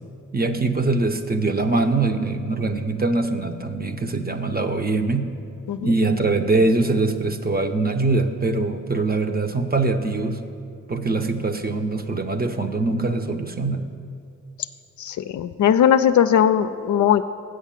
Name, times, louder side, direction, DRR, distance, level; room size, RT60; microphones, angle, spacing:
voice 1, 0.3-5.3 5.8-10.4 10.9-13.8, right 3 dB, 30° right, 7 dB, 0.8 m, -23 dB
voice 2, 15.0-17.2, left 9 dB, 65° left, 10 dB, 0.5 m, -19 dB
8.0 x 6.4 x 7.4 m, 2.5 s
supercardioid pair, 45°, 33 cm